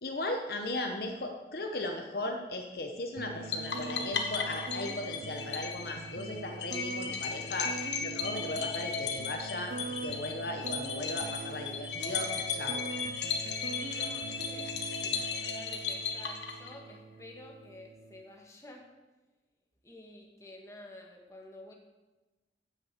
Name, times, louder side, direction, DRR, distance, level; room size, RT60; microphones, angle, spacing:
voice 1, 0.0-9.7 10.0-12.8, left 2 dB, 55° left, 3 dB, 1.0 m, -37 dB
sound 1, 3.2-18.2, right 3 dB, 50° right, 0.5 m, -43 dB
sound 2, 3.5-17.0, left 5 dB, 80° left, 1.3 m, -36 dB
voice 2, 13.5-18.9 19.8-21.7, left 1 dB, 15° left, 0 dB, 1.5 m, -51 dB
9.4 x 6.9 x 7.5 m, 1.2 s
head